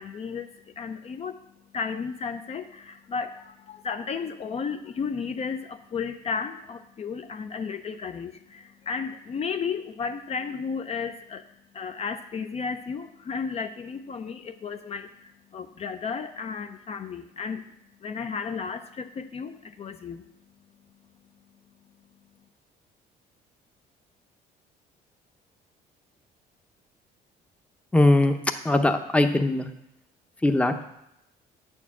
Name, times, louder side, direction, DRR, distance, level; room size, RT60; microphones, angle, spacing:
voice 1, 0.0-11.5 11.7-17.6 18.0-20.2, left 5 dB, 40° left, 8 dB, 0.6 m, -33 dB
voice 2, 27.9-28.3 28.6-29.7 30.4-30.7, left 2 dB, 5° left, 7 dB, 0.7 m, -20 dB
9.1 x 4.6 x 7.2 m, 0.79 s
cardioid pair, 110°, 17 cm